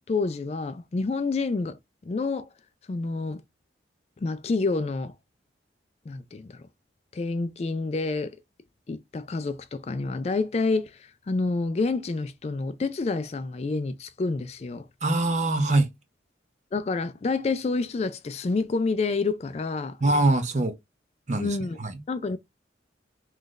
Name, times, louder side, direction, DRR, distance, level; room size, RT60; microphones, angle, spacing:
voice 1, 0.0-2.5 2.9-3.4 4.2-5.1 6.1-6.6 7.1-8.4 8.9-14.9 16.7-20.0 21.4-21.8 22.1-22.4, left 3 dB, 35° left, 0.3 m, -28 dB
voice 2, 15.0-15.9 20.0-20.7 21.3-21.9, right 2 dB, 40° right, 0.7 m, -23 dB
3.1 x 2.4 x 3.9 m
head